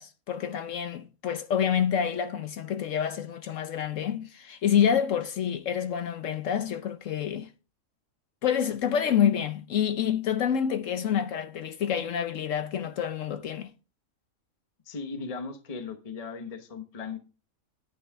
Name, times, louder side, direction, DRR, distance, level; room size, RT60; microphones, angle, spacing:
voice 1, 0.0-7.5 8.4-13.7, left 8 dB, 70° left, 1.0 m, -27 dB
voice 2, 14.8-17.2, left 4 dB, 30° left, 1.1 m, -37 dB
10.0 x 9.5 x 3.6 m
omnidirectional pair, 1.5 m